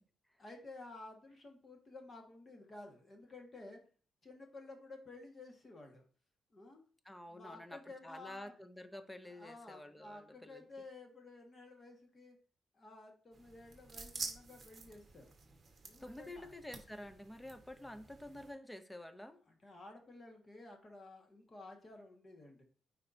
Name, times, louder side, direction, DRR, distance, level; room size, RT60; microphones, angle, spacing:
voice 1, 0.4-3.8 4.2-6.0 6.5-6.8 7.3-8.5 9.3-12.4 12.7-15.3 15.8-16.5 19.5-22.6, left 2 dB, 30° left, 3 dB, 1.5 m, -53 dB
voice 2, 7.1-10.7 16.0-19.4, left 1 dB, 5° left, 10 dB, 0.6 m, -49 dB
sound 1, 13.3-18.5, right 4 dB, 30° right, 1.3 m, -49 dB
9.3 x 4.3 x 2.7 m, 0.41 s
cardioid pair, 115°, 0 cm